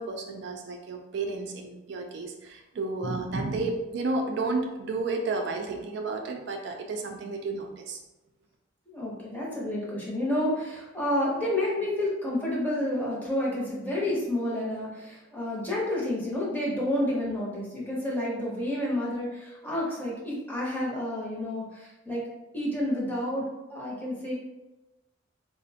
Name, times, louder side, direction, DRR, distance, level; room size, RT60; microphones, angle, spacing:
voice 1, 0.0-8.0, right 3 dB, 60° right, 3 dB, 0.3 m, -32 dB
voice 2, 8.9-22.2 22.5-24.3, left 1 dB, 10° left, -5 dB, 0.7 m, -30 dB
4.0 x 2.1 x 2.7 m, 1.0 s
head